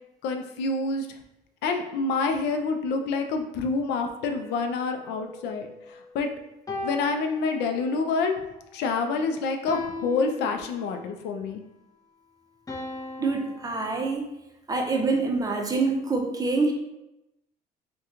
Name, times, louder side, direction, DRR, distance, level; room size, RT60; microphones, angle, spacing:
voice 1, 0.2-1.1 1.6-6.3 6.8-8.4 8.7-11.6, left 4 dB, 85° left, 5 dB, 0.4 m, -27 dB
sound 1, 4.3-6.1 6.7-8.1 9.7-11.1 12.7-14.1, left 3 dB, 20° left, 0.6 m, -39 dB
voice 2, 13.2-14.3 14.7-16.7, right 3 dB, 20° right, 2 dB, 0.5 m, -25 dB
2.9 x 2.2 x 3.6 m, 0.91 s
cardioid pair, 110°, 17 cm